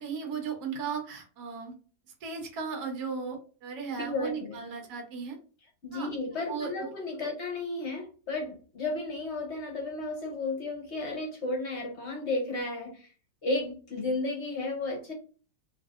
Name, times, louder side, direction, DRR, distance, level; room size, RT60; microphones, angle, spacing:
voice 1, 0.0-1.7 2.2-5.4 5.9-6.1 6.5-6.9, right 5 dB, 65° right, 2 dB, 1.3 m, -36 dB
voice 2, 4.0-4.7 5.8-13.1 13.4-15.1, left 2 dB, 50° left, 1 dB, 0.9 m, -33 dB
3.1 x 2.7 x 2.4 m, 0.38 s
omnidirectional pair, 1.8 m